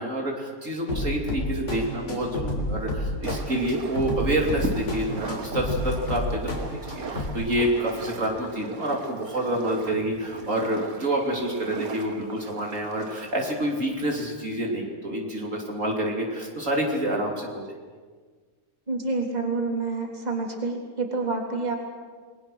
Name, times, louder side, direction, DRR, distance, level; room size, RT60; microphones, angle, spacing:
voice 1, 0.0-17.6, right 1 dB, 60° right, 0 dB, 3.3 m, -28 dB
sound 1, 0.9-7.3, left 1 dB, 50° left, 4.1 m, -30 dB
sound 2, 3.2-14.2, right 4 dB, 75° right, 2.2 m, -40 dB
voice 2, 18.9-21.8, right 3 dB, 25° right, 1 dB, 3.3 m, -28 dB
29.0 x 21.0 x 6.3 m, 1.5 s
omnidirectional pair, 1.5 m